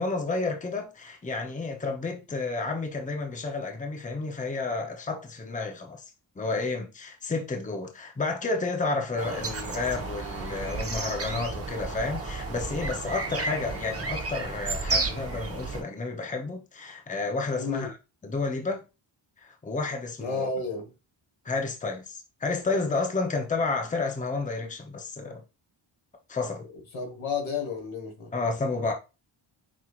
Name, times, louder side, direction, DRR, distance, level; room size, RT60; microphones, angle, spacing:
voice 1, 0.0-6.0 6.4-17.9 18.2-18.8 19.4-20.5 21.4-25.4 26.3-26.6 28.3-28.9, left 3 dB, 15° left, 0.7 m, -31 dB
sound 1, 9.2-15.8, right 3 dB, 30° right, 0.9 m, -32 dB
voice 2, 17.6-17.9 20.2-20.9 26.9-28.3, left 4 dB, 80° left, 1.6 m, -32 dB
6.1 x 2.7 x 2.4 m
wide cardioid pair, 95°, 48 cm